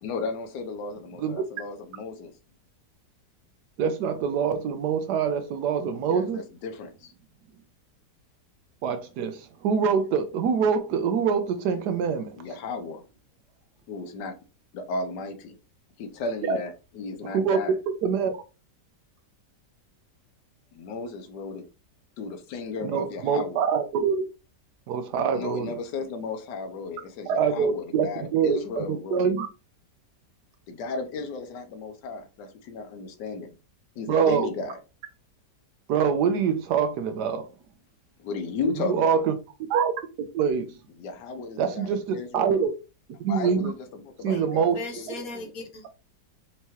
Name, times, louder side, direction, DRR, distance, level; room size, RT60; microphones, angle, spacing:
voice 1, 0.0-2.3 6.0-7.1 12.4-13.0 13.9-14.3 14.7-15.6 16.0-17.8 20.7-21.6 22.2-23.7 25.3-29.2 30.7-33.5 34.0-34.8 38.2-39.3 41.0-42.6 43.3-45.3, left 3 dB, 75° left, 1.3 m, -34 dB
voice 2, 3.8-6.4 8.8-12.4 16.5-16.6 17.3-17.6 18.0-18.3 22.8-24.2 24.9-25.7 27.3-29.5 34.1-34.5 35.9-37.5 38.8-39.3 39.7-39.9 40.2-40.7 41.6-42.7 43.2-43.7 44.2-44.8, right 6 dB, 75° right, 1.2 m, -25 dB
voice 3, 44.7-45.9, left 3 dB, 60° left, 1.3 m, -37 dB
4.5 x 2.8 x 3.0 m
omnidirectional pair, 1.8 m